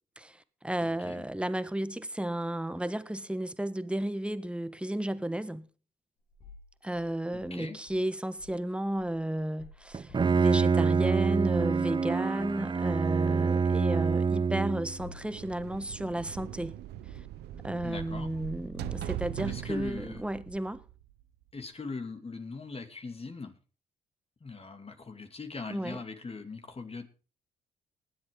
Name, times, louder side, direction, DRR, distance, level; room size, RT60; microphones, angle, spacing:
voice 1, 0.2-5.7 6.8-16.8 17.1-17.3 17.6-20.8 25.7-26.0, right 1 dB, 5° right, 1.3 m, -33 dB
sound 1, 6.3-6.7 6.9-8.1 8.3-8.6 9.0-15.7 16.1-16.2 16.6-19.0, left 4 dB, 80° left, 6.0 m, -53 dB
voice 2, 7.3-7.8 17.8-18.3 19.5-20.2 21.5-23.5 24.4-27.1, left 4 dB, 35° left, 2.4 m, -40 dB
Bowed string instrument, 9.9-15.0, right 5 dB, 30° right, 0.5 m, -26 dB
sound 2, 14.7-21.4, right 13 dB, 80° right, 0.8 m, -41 dB
20.0 x 7.9 x 3.6 m
supercardioid pair, 50°, 17 cm